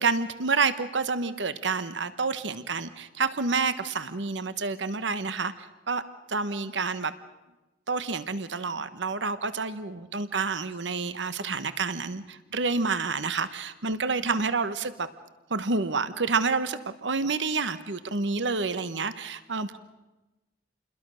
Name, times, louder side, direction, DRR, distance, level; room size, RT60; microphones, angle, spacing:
voice 1, 0.0-5.5 5.9-6.0 6.3-7.1 7.9-15.1 15.5-19.8, right 4 dB, 85° right, 12 dB, 1.1 m, -28 dB
29.0 x 21.5 x 6.4 m, 1.1 s
head